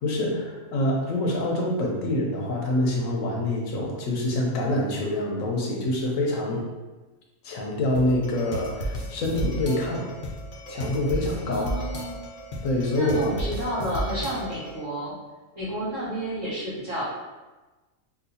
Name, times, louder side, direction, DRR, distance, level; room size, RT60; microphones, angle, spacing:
voice 1, 0.0-6.6 7.4-10.1 10.7-11.7 12.6-13.3, left 1 dB, 85° left, -1 dB, 1.1 m, -26 dB
sound 1, 7.9-14.8, equal, 55° left, 0.6 m, -33 dB
voice 2, 11.5-12.2 12.9-15.1 15.5-17.0, right 1 dB, 60° right, -13 dB, 1.6 m, -31 dB
4.0 x 2.4 x 2.7 m, 1.2 s
omnidirectional pair, 1.3 m